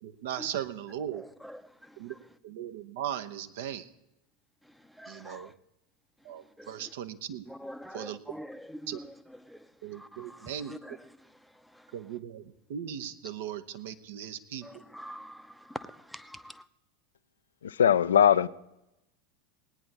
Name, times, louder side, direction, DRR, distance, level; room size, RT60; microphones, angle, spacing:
voice 1, 0.0-1.2 2.0-2.1 2.4-3.9 5.1-5.5 6.2-7.4 7.9-8.2 8.9-9.0 9.8-10.7 11.9-14.8, right 10 dB, 60° right, 0.9 m, -38 dB
voice 2, 1.1-2.0 5.0-5.5 6.6-6.9 7.5-9.1 9.4-9.7 9.9-11.0 11.7-11.9 14.6-16.6, equal, ahead, 0.7 m, -45 dB
voice 3, 17.6-18.5, left 9 dB, 70° left, 0.4 m, -21 dB
19.0 x 9.6 x 4.1 m
figure-of-eight pair, 80°, 0 cm